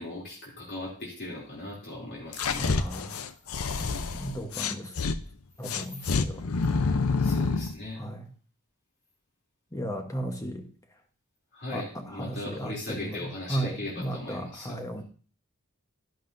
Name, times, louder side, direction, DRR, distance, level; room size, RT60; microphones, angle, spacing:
voice 1, 0.0-2.8 3.8-4.2 5.7-6.1 7.2-8.0 11.5-14.8, left 2 dB, 55° left, 2.9 m, -39 dB
sound 1, 2.3-5.2 5.6-7.7, left 4 dB, 70° left, 0.6 m, -27 dB
voice 2, 2.6-3.2 3.8-4.9 5.6-6.5 8.0-8.3 9.7-10.7 11.7-11.8 12.1-13.2 13.5-15.0, right 1 dB, 15° left, 1.1 m, -35 dB
12.0 x 11.0 x 2.6 m
head